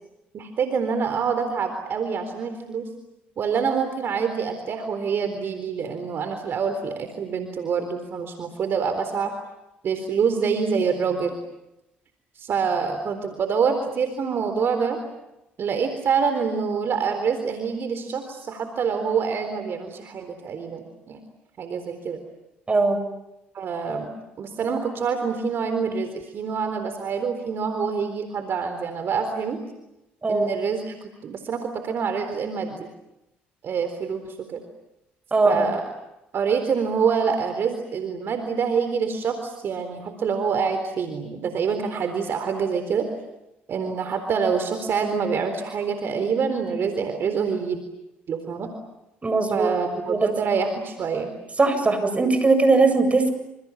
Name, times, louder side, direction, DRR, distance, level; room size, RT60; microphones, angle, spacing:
voice 1, 0.3-2.9 3.4-9.3 9.8-11.3 12.4-15.0 15.6-21.2 21.6-22.2 23.5-24.1 24.4-29.6 30.3-30.9 31.2-32.8 33.6-34.6 35.4-35.8 36.3-43.1 43.7-47.8 48.3-48.7 49.5-51.3, right 6 dB, 55° right, 8 dB, 3.9 m, -26 dB
voice 2, 22.7-23.0 30.2-30.5 35.3-35.7 49.2-49.7 50.1-50.3 51.6-53.3, right 3 dB, 30° right, 9 dB, 8.0 m, -19 dB
28.5 x 28.0 x 7.3 m, 0.90 s
supercardioid pair, 65°, 5 cm